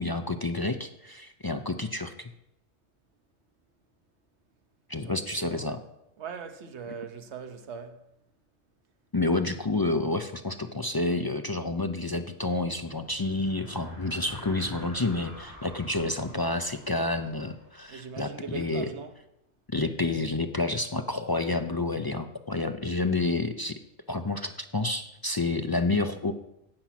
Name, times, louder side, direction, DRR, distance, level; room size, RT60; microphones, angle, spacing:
voice 1, 0.0-2.3 4.9-5.8 9.1-18.9 19.7-23.8 24.1-26.3, left 2 dB, 30° left, 0.4 m, -29 dB
voice 2, 5.0-5.8 6.2-8.1 17.9-19.2, right 6 dB, 85° right, 1.3 m, -40 dB
sound 1, 12.7-18.3, left 1 dB, 50° left, 3.4 m, -47 dB
16.5 x 6.0 x 5.9 m
omnidirectional pair, 1.1 m